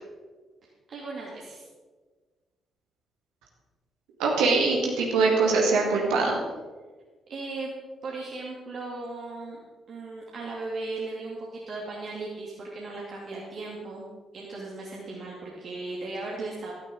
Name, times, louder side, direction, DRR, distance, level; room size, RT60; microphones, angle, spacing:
voice 1, 0.9-1.6 7.3-7.7 8.0-9.6 9.9-14.1 14.3-16.7, right 3 dB, 50° right, -4 dB, 2.6 m, -37 dB
voice 2, 4.2-6.3, right 3 dB, 70° right, -1 dB, 2.0 m, -22 dB
15.0 x 13.0 x 3.9 m, 1.4 s
figure-of-eight pair, 40°, 0 cm